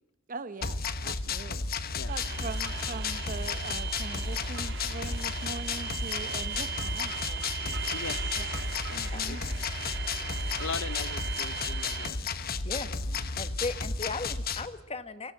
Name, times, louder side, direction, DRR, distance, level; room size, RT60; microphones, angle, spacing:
voice 1, 0.3-1.6 2.1-7.4 8.4-8.5 8.9-9.4 13.1-13.4, right 3 dB, 45° right, 0.9 m, -42 dB
sound 1, 0.6-14.7, left 4 dB, 50° left, 1.2 m, -33 dB
sound 2, 2.1-12.1, right 8 dB, 60° right, 2.3 m, -38 dB
voice 2, 7.9-8.6 8.9-9.4 10.6-12.2, left 5 dB, 70° left, 0.7 m, -40 dB
voice 3, 13.4-15.3, left 3 dB, 30° left, 1.3 m, -36 dB
25.0 x 16.0 x 7.7 m
head